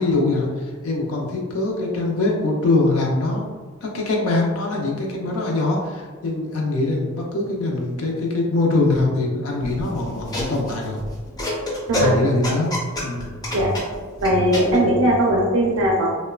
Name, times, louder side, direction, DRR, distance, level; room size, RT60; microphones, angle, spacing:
voice 1, 0.0-3.5 3.8-11.0 12.0-12.7 13.0-13.3, left 2 dB, 75° left, -1 dB, 0.4 m, -23 dB
sound 1, 9.6-14.8, equal, 20° left, 0.4 m, -27 dB
voice 2, 14.2-16.1, right 1 dB, 70° right, -2 dB, 0.4 m, -19 dB
2.9 x 2.1 x 2.3 m, 1.4 s
head